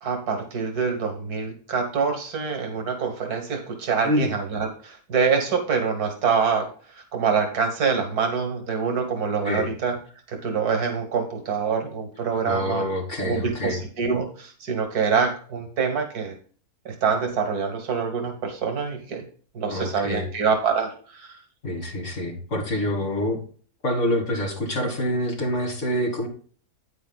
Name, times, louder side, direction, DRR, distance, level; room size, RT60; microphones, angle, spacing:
voice 1, 0.0-9.9 10.3-12.8 13.2-16.4 16.9-19.2 19.5-21.4, right 5 dB, 85° right, 5 dB, 2.0 m, -25 dB
voice 2, 4.0-4.3 9.4-9.7 12.5-13.8 19.7-20.3 21.6-23.4 23.8-26.3, left 1 dB, 50° left, 1 dB, 2.6 m, -26 dB
9.2 x 9.2 x 2.3 m, 0.42 s
omnidirectional pair, 1.6 m